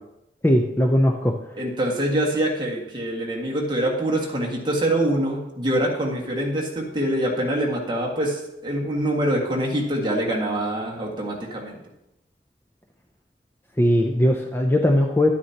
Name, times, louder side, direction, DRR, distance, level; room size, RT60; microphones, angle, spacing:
voice 1, 0.4-1.3 13.8-15.3, left 1 dB, 15° left, 2 dB, 0.5 m, -19 dB
voice 2, 1.5-11.8, right 1 dB, 25° right, -3 dB, 1.7 m, -25 dB
11.0 x 9.4 x 2.8 m, 0.89 s
head